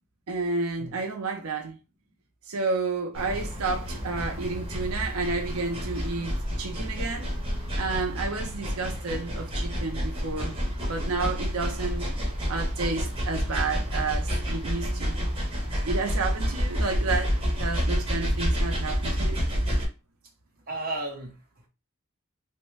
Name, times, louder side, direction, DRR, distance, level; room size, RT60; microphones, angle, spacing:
voice 1, 0.3-1.8 2.5-7.3 7.8-12.1 12.5-15.2 15.8-19.4, right 3 dB, 90° right, 0.6 m, -31 dB
sound 1, 3.1-19.9, equal, 25° right, 1.0 m, -29 dB
voice 2, 20.7-21.7, right 2 dB, 40° right, 0.9 m, -34 dB
3.2 x 2.1 x 3.2 m
head